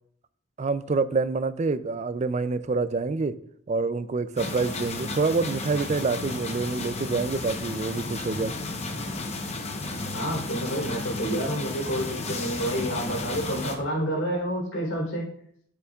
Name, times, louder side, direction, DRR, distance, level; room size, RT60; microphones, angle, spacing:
voice 1, 0.6-3.3 3.7-8.5, right 4 dB, 35° right, 13 dB, 0.4 m, -27 dB
sound 1, 4.4-13.8, left 2 dB, 30° left, 0.9 m, -33 dB
voice 2, 10.1-15.3, equal, 70° left, -2 dB, 3.6 m, -29 dB
12.5 x 6.9 x 2.4 m, 0.64 s
head